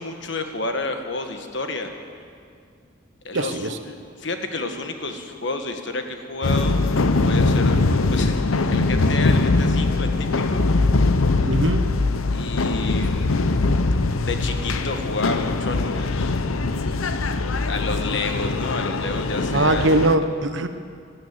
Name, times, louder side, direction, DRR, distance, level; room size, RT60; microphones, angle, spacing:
voice 1, 0.0-1.9 3.2-6.8 7.2-7.8 8.1-8.4 8.7-10.6 12.3-13.6 14.2-16.3 17.7-20.0, left 3 dB, 60° left, 6 dB, 1.3 m, -30 dB
voice 2, 3.3-3.8 11.5-11.9 19.5-20.7, right 2 dB, 65° right, 9 dB, 0.9 m, -21 dB
sound 1, 6.4-20.2, left 3 dB, 90° left, 0.7 m, -21 dB
13.0 x 12.5 x 8.8 m, 2.2 s
head